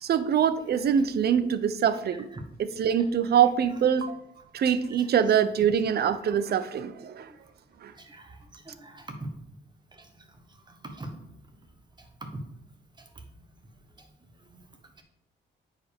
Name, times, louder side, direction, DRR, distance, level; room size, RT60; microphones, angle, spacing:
voice 1, 0.0-2.3 2.6-4.2 4.5-7.3 7.8-7.9, right 8 dB, 55° right, 13 dB, 0.6 m, -24 dB
voice 2, 8.0-8.4 8.7-9.3 10.0-10.1 10.8-11.2 12.3-12.4, right 2 dB, 20° right, 5 dB, 1.3 m, -40 dB
9.0 x 4.9 x 3.5 m, 0.80 s
cardioid pair, 90°, 20 cm